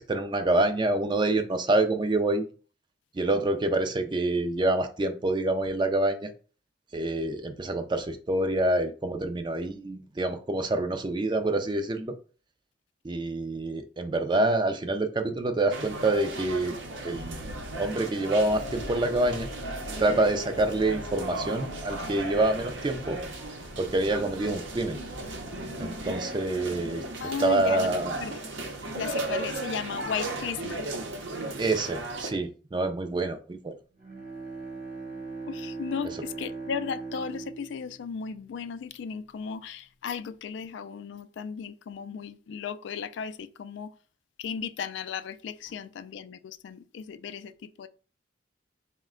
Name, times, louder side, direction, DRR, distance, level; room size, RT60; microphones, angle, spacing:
voice 1, 0.0-2.5 3.1-6.3 6.9-12.2 13.0-16.8 17.0-17.3 17.7-19.5 20.0-23.2 23.8-25.0 25.8-27.0 27.4-28.1 31.6-33.8, right 2 dB, 25° right, 0.4 m, -27 dB
sound 1, 15.7-32.3, right 2 dB, 80° right, 0.7 m, -36 dB
sound 2, 18.3-26.2, left 1 dB, 40° left, 0.7 m, -43 dB
voice 2, 27.2-27.9 28.2-28.4 28.9-30.9 35.5-43.9 44.4-47.9, left 6 dB, 70° left, 0.3 m, -35 dB
Bowed string instrument, 34.0-39.0, right 4 dB, 45° right, 1.0 m, -40 dB
4.1 x 2.1 x 3.6 m
head